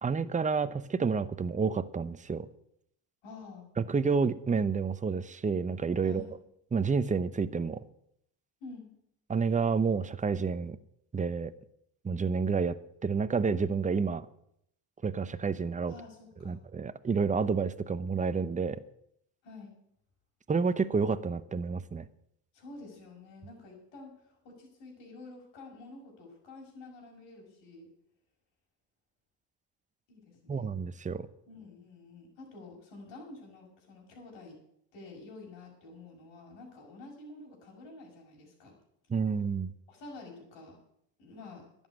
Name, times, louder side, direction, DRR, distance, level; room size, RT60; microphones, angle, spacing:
voice 1, 0.0-2.5 3.8-6.2 6.7-7.8 9.3-10.8 11.1-11.5 12.0-14.3 15.0-15.9 16.4-18.8 20.5-22.1 30.5-31.3 39.1-39.7, right 5 dB, 15° right, 13 dB, 0.7 m, -29 dB
voice 2, 3.2-3.7 6.0-6.3 8.6-8.9 15.9-16.6 19.4-19.7 22.5-27.9 30.1-30.7 31.5-34.6 34.9-38.7 39.9-40.8 41.2-41.6, left 3 dB, 75° left, -1 dB, 6.1 m, -49 dB
11.5 x 7.3 x 9.5 m, 0.74 s
supercardioid pair, 95°, 44 cm